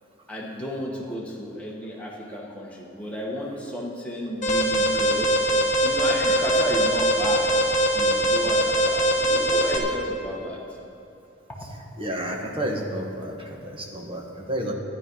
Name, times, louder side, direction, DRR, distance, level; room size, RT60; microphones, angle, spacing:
voice 1, 0.3-5.5 5.8-10.6 11.5-11.6, left 1 dB, 5° left, -4 dB, 1.8 m, -32 dB
Alarm, 4.4-9.8, right 1 dB, 35° left, 1.4 m, -22 dB
voice 2, 12.0-14.7, right 1 dB, 25° right, 0 dB, 1.5 m, -31 dB
13.0 x 11.0 x 5.6 m, 2.7 s
head